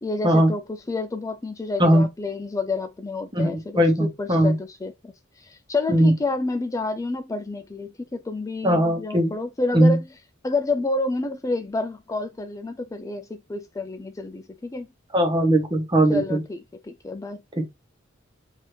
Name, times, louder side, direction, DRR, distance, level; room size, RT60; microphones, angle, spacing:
voice 1, 0.0-10.0 10.4-14.9 16.1-16.6 16.8-17.4, left 3 dB, 15° left, 0.3 m, -29 dB
voice 2, 3.3-4.6 5.9-6.1 8.6-9.3 9.7-10.0 15.1-16.4 17.6-17.7, right 1 dB, 25° right, 1.0 m, -19 dB
4.6 x 2.6 x 3.2 m
head